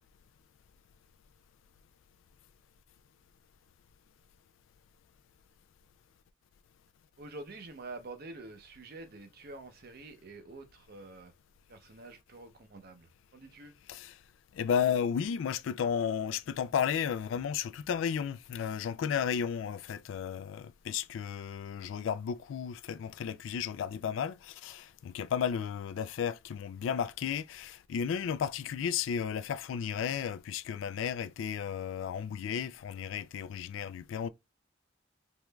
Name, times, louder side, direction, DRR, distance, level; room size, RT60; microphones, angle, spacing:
voice 1, 7.2-11.3 11.7-13.8, right 2 dB, 55° right, 0.6 m, -47 dB
voice 2, 14.5-34.3, left 7 dB, 90° left, 0.3 m, -33 dB
3.5 x 3.1 x 2.2 m
head